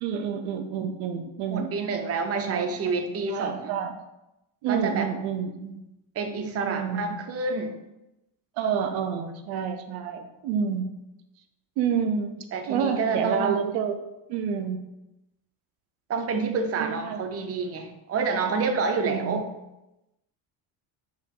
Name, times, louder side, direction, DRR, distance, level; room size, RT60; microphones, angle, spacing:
voice 1, 0.0-1.8 2.4-2.9 3.3-3.9 4.6-5.8 6.7-7.1 8.6-10.9 11.8-14.0 14.3-14.8 16.8-17.2 19.0-19.4, right 7 dB, 85° right, 7 dB, 0.6 m, -29 dB
voice 2, 1.5-3.7 4.7-5.1 6.2-7.8 12.5-13.6 16.1-19.4, right 4 dB, 30° right, 6 dB, 0.6 m, -28 dB
4.7 x 2.9 x 3.6 m, 0.94 s
supercardioid pair, 90°, 47 cm